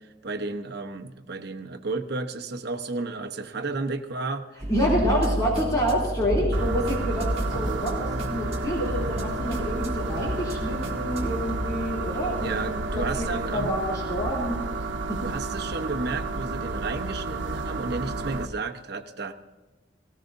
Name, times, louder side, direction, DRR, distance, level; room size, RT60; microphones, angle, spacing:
voice 1, 0.0-4.4 5.1-5.3 12.4-13.7 15.2-19.3, right 3 dB, 60° right, 5 dB, 1.0 m, -32 dB
sound 1, 4.6-11.7, right 1 dB, 35° right, 2.1 m, -31 dB
voice 2, 4.7-13.3 13.5-14.6 15.1-15.2, equal, 20° left, -5 dB, 3.0 m, -28 dB
sound 2, 6.5-18.5, right 3 dB, 85° right, 1.1 m, -31 dB
18.5 x 18.0 x 2.7 m, 1.2 s
head